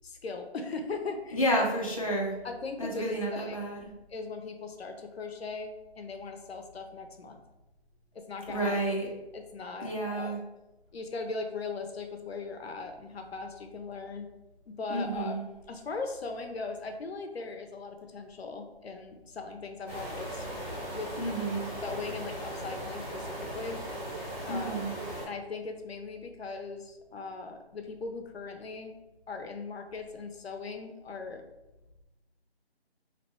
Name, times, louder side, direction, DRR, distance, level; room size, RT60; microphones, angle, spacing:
voice 1, 0.0-1.4 2.4-3.6 4.1-7.4 8.1-8.8 9.3-10.4 10.9-14.3 14.7-15.3 15.7-20.5 20.9-21.1 21.8-23.8 24.4-24.8 25.2-28.9 29.3-31.4, left 4 dB, 75° left, 5 dB, 0.7 m, -39 dB
voice 2, 1.3-2.4 2.8-3.9 8.5-9.1 9.8-10.4 14.9-15.4 21.2-21.7 24.5-24.9, right 1 dB, 35° left, -3 dB, 0.5 m, -30 dB
sound 1, 19.9-25.3, right 1 dB, 15° left, 0.9 m, -38 dB
3.0 x 2.9 x 2.9 m, 0.99 s
hypercardioid pair, 180°, 32 cm